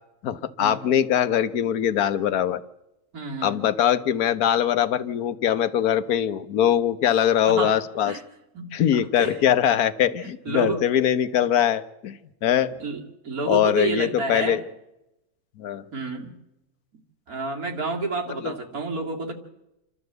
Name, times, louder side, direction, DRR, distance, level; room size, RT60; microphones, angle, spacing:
voice 1, 0.2-2.6 3.4-8.2 8.7-12.7 13.5-14.6 15.6-15.8 18.4-18.5, left 10 dB, 85° left, 12 dB, 1.4 m, -22 dB
voice 2, 3.1-3.6 7.1-7.8 8.1-8.2 8.5-8.7 9.1-9.4 10.2-10.8 12.8-14.6 15.9-16.3 17.3-19.3, right 3 dB, 75° right, 1 dB, 2.9 m, -30 dB
27.5 x 12.5 x 8.0 m, 0.91 s
omnidirectional pair, 1.6 m